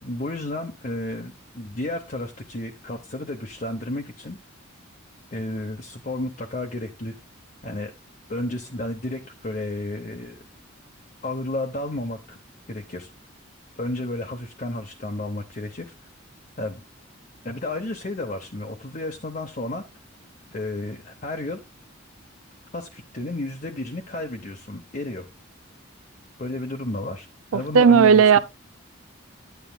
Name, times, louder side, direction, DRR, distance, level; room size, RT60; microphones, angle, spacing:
voice 1, 0.0-4.4 5.3-7.1 7.6-7.9 8.3-10.4 11.2-12.4 12.7-13.1 13.8-15.9 16.6-16.8 17.4-19.8 20.5-21.6 22.7-25.3 26.4-27.3 27.5-28.4, left 1 dB, 40° left, 0.8 m, -32 dB
voice 2, 27.5-28.4, right 6 dB, 85° right, 0.4 m, -15 dB
10.5 x 9.1 x 2.3 m
head